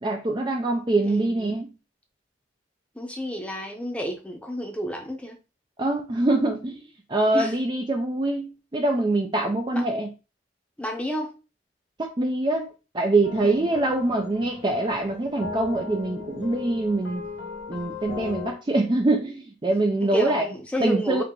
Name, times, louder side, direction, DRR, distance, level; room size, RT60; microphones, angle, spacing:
voice 1, 0.0-1.7 5.8-6.8 7.1-10.1 12.0-12.7 12.9-17.2 17.7-20.4 20.8-21.2, right 2 dB, 25° right, 0.4 m, -24 dB
voice 2, 1.0-1.6 2.9-5.4 7.3-7.5 9.7-9.8 10.8-11.4 13.4-13.8 20.0-21.2, equal, 5° left, 0.7 m, -31 dB
sound 1, 13.2-18.5, left 5 dB, 70° left, 1.4 m, -37 dB
4.6 x 2.4 x 3.7 m
head